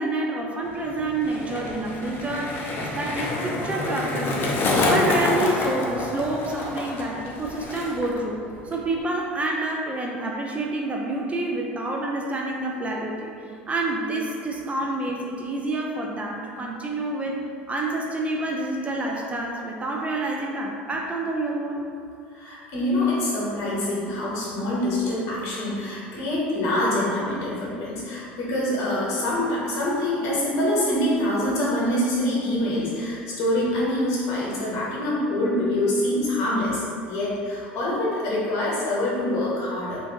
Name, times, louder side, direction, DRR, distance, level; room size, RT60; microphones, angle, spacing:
voice 1, 0.0-4.6 4.9-17.4 17.7-21.9, right 2 dB, 20° right, 0 dB, 0.3 m, -28 dB
Skateboard, 0.6-8.2 8.5-9.0, left 2 dB, 40° left, 0.5 m, -27 dB
voice 2, 22.3-40.0, left 1 dB, 55° left, -6 dB, 0.9 m, -25 dB
2.5 x 2.4 x 2.7 m, 2.3 s
hypercardioid pair, 70°, 6 cm